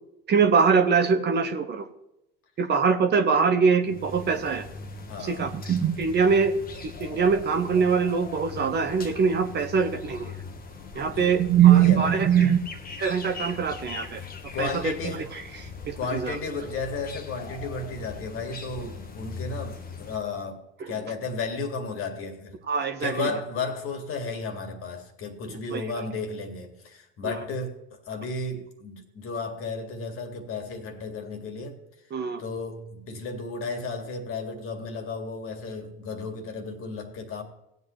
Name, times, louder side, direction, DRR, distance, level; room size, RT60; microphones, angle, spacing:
voice 1, 0.3-1.9 2.6-4.6 5.2-6.5 7.0-10.4 10.9-12.6 13.0-14.2 14.6-14.9 15.3-16.4 20.8-20.9 22.7-23.3 25.5-25.8 27.2-27.4 32.1-32.4, right 6 dB, 35° right, 1.1 m, -22 dB
sound 1, 3.8-20.2, left 4 dB, 30° left, 1.3 m, -40 dB
voice 2, 5.1-5.5 11.1-12.2 14.5-15.3 15.9-22.5 23.0-31.8 32.4-37.4, left 3 dB, 45° left, 2.2 m, -34 dB
17.5 x 8.2 x 3.2 m
hypercardioid pair, 80°, 30 cm